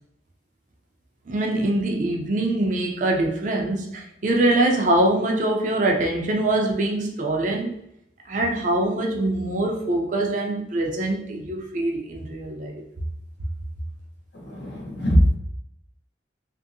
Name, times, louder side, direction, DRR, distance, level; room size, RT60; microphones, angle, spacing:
voice 1, 1.3-7.7 8.3-12.8, right 1 dB, 40° right, 0 dB, 0.4 m, -23 dB
voice 2, 14.3-15.4, equal, 65° left, -1 dB, 0.7 m, -21 dB
3.0 x 2.6 x 2.6 m, 0.76 s
head